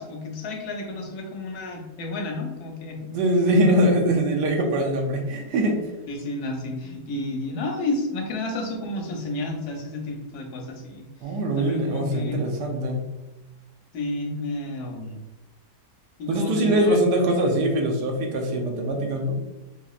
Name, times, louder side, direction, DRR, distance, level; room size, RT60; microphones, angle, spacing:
voice 1, 0.0-3.0 6.1-11.0 11.6-12.4 13.9-15.2 16.2-17.0, left 2 dB, 70° left, 2 dB, 1.2 m, -31 dB
voice 2, 3.0-5.9 11.2-13.1 16.3-19.4, right 1 dB, 85° right, 3 dB, 1.3 m, -22 dB
4.2 x 2.8 x 2.3 m, 1.1 s
omnidirectional pair, 1.8 m